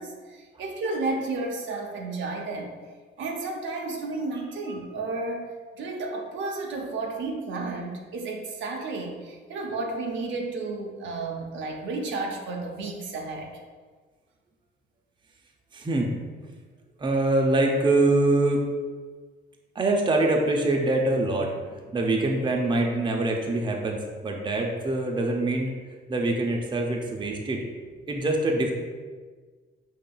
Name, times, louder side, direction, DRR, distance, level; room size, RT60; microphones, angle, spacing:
voice 1, 0.0-2.7 3.2-5.5 5.8-13.6, right 3 dB, 70° right, 1 dB, 0.7 m, -32 dB
voice 2, 15.7-16.1 17.0-18.6 19.7-25.7 26.1-27.6 28.1-28.7, right 2 dB, 25° right, 1 dB, 0.5 m, -24 dB
5.4 x 2.9 x 2.2 m, 1.5 s
cardioid pair, 90°, 20 cm